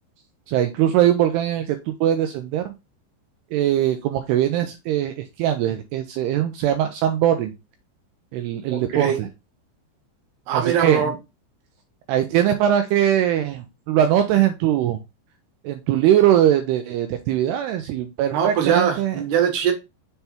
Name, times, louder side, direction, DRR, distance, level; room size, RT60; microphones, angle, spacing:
voice 1, 0.5-2.7 3.5-7.5 8.3-9.3 10.5-11.2 12.1-15.0 15.6-19.2, right 11 dB, 85° right, 7 dB, 2.3 m, -21 dB
voice 2, 8.7-9.2 10.5-11.1 18.3-19.7, right 8 dB, 70° right, 4 dB, 2.9 m, -21 dB
6.8 x 3.4 x 4.3 m, 0.24 s
omnidirectional pair, 5.3 m